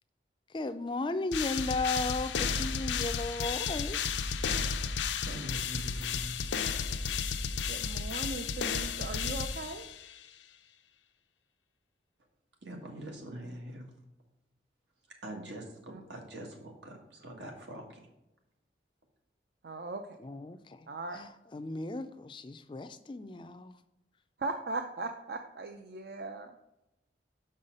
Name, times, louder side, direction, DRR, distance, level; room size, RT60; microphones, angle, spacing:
voice 1, 0.5-4.2 20.2-20.9 21.1-23.8, left 2 dB, 25° left, 10 dB, 0.3 m, -35 dB
sound 1, 1.3-10.1, left 6 dB, 85° left, 0.5 m, -33 dB
voice 2, 5.2-6.4 12.6-13.9 15.2-18.0, right 1 dB, 85° right, 2 dB, 1.7 m, -43 dB
voice 3, 7.7-9.9 15.9-16.0 19.6-20.0 20.9-21.2 24.4-26.5, right 3 dB, 60° right, 5 dB, 0.5 m, -38 dB
6.1 x 5.6 x 5.2 m, 0.91 s
head